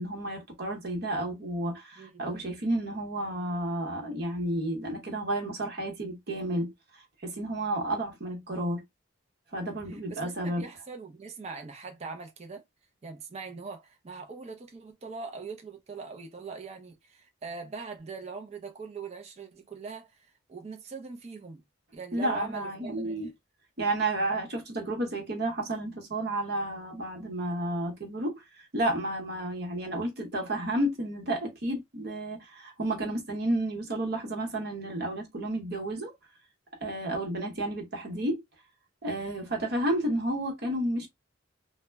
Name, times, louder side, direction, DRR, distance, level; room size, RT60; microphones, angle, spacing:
voice 1, 0.0-8.8 9.5-10.6 22.1-23.3 23.8-36.1 36.8-38.4 39.0-41.1, right 1 dB, 55° right, 0.9 m, -31 dB
voice 2, 2.0-2.3 9.7-12.6 13.0-21.6 21.9-23.3, right 4 dB, 35° right, 0.4 m, -42 dB
2.1 x 2.1 x 3.3 m
head